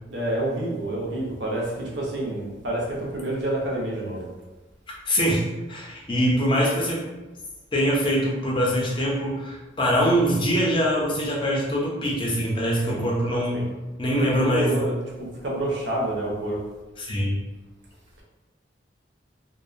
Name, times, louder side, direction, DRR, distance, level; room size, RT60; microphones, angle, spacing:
voice 1, 0.1-4.3 12.9-13.0 13.5-13.7 14.2-16.6, right 1 dB, 65° right, -3 dB, 0.6 m, -28 dB
voice 2, 5.1-7.1 7.7-13.6 14.0-14.8 17.0-17.4, equal, 25° left, -3 dB, 0.5 m, -23 dB
2.5 x 2.0 x 2.5 m, 1.1 s
head